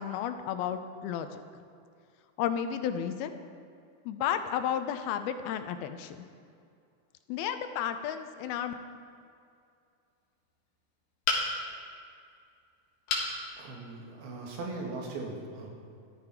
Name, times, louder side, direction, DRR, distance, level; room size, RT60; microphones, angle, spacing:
voice 1, 0.0-1.4 2.4-3.3 4.1-6.3 7.3-8.7, left 9 dB, 85° left, 9 dB, 2.5 m, -32 dB
sound 1, 11.3-11.8 13.1-13.4 13.9-14.0 14.4-14.5, left 4 dB, 65° left, 3.1 m, -29 dB
voice 2, 13.6-15.7, right 3 dB, 80° right, -1 dB, 3.8 m, -39 dB
14.5 x 12.5 x 4.6 m, 2.4 s
omnidirectional pair, 4.4 m